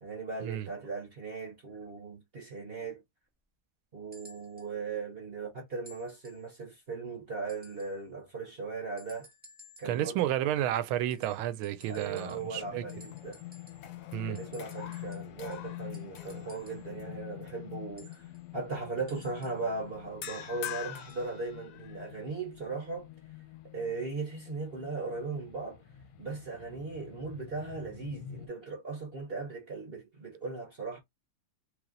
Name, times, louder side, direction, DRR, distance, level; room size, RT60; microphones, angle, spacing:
voice 1, 0.0-3.0 3.9-9.3 9.8-10.3 11.9-13.4 14.2-18.3 18.5-23.1 23.7-25.8 26.2-31.0, right 4 dB, 40° right, 0.9 m, -38 dB
sound 1, 4.1-4.7 5.8-6.5 7.5-8.0 9.0-10.1 11.1-12.6 12.9-14.0 14.3-16.9 18.0-19.7 20.9-21.3 22.2-22.3, left 1 dB, 5° right, 1.0 m, -57 dB
voice 2, 9.8-12.8 14.1-14.4, right 12 dB, 75° right, 1.4 m, -31 dB
sound 2, 11.8-28.5, left 13 dB, 90° left, 1.5 m, -47 dB
sound 3, 12.7-13.4 13.7-17.0 17.5-17.7 20.2-22.2, left 11 dB, 70° left, 0.9 m, -45 dB
3.3 x 3.2 x 3.8 m
omnidirectional pair, 2.4 m